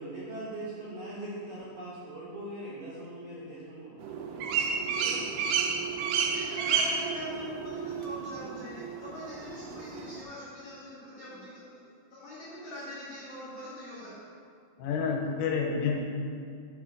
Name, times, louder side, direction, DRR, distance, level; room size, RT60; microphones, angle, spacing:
voice 1, 0.0-4.5 4.9-5.2, right 1 dB, 75° right, -9 dB, 2.0 m, -41 dB
sound 1, 4.0-10.2, right 6 dB, 90° right, 3.3 m, -31 dB
voice 2, 6.3-11.7 12.1-14.2, left 1 dB, 60° left, -10 dB, 2.1 m, -42 dB
voice 3, 14.8-16.1, left 5 dB, 85° left, 1 dB, 3.3 m, -29 dB
7.3 x 4.5 x 6.1 m, 2.2 s
omnidirectional pair, 5.8 m